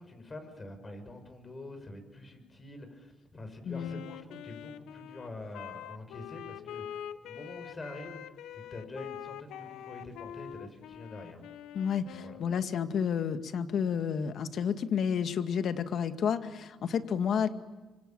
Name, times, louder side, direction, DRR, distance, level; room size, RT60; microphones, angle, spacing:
voice 1, 0.0-8.2 8.5-11.5 12.1-12.4, left 2 dB, 30° left, 7 dB, 6.3 m, -46 dB
Wind instrument woodwind instrument, 3.7-12.7, left 10 dB, 85° left, 1.0 m, -45 dB
voice 2, 3.7-4.0 11.7-17.5, left 7 dB, 65° left, 8 dB, 1.9 m, -30 dB
26.0 x 25.5 x 9.0 m, 1.2 s
cardioid pair, 90°, 0 cm